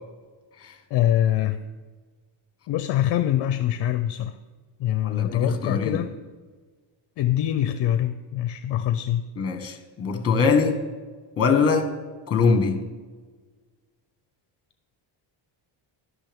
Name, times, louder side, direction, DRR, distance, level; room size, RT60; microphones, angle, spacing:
voice 1, 0.9-1.6 2.7-4.4 4.8-6.1 7.2-9.2, left 11 dB, 60° left, 9 dB, 0.6 m, -24 dB
voice 2, 5.0-6.0 9.4-10.7 11.4-11.9 12.3-12.8, left 5 dB, 30° left, 6 dB, 1.5 m, -22 dB
11.5 x 11.5 x 3.6 m, 1.4 s
cardioid pair, 145°, 49 cm